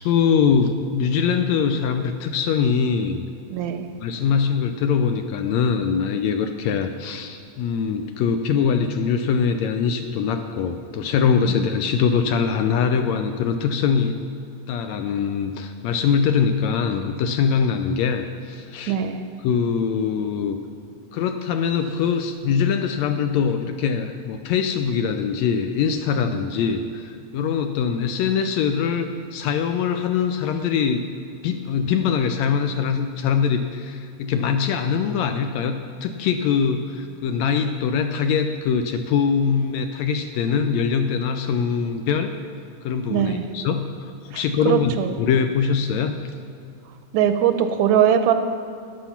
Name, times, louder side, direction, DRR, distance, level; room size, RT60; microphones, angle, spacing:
voice 1, 0.0-3.3 4.0-14.2 14.7-19.0 19.4-20.6 21.1-31.0 31.4-42.3 42.8-44.9 45.2-46.1, left 6 dB, 75° left, 7 dB, 1.7 m, -23 dB
voice 2, 3.5-3.9 11.5-11.7 18.9-19.2 43.1-43.5 44.3-45.2 47.1-48.3, right 9 dB, 80° right, 8 dB, 1.9 m, -21 dB
13.0 x 10.0 x 5.8 m, 2.3 s
omnidirectional pair, 3.5 m